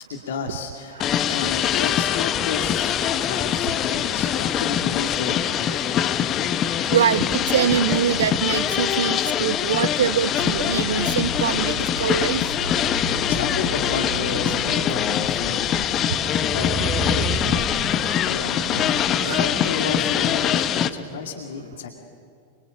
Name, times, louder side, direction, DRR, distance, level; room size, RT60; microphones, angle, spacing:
voice 1, 0.1-6.0 12.9-15.9 16.5-21.9, left 5 dB, 60° left, 3 dB, 2.3 m, -32 dB
nyc washjazzfountain, 1.0-20.9, left 10 dB, 30° left, 1.1 m, -23 dB
voice 2, 6.9-12.4 19.2-19.5, right 9 dB, 65° right, 19 dB, 0.7 m, -24 dB
sound 1, 8.5-21.3, right 1 dB, 85° left, 3.7 m, -36 dB
sound 2, 14.8-17.8, right 3 dB, 20° right, 3.5 m, -30 dB
25.5 x 24.5 x 8.9 m, 2.3 s
figure-of-eight pair, 90°, 0 cm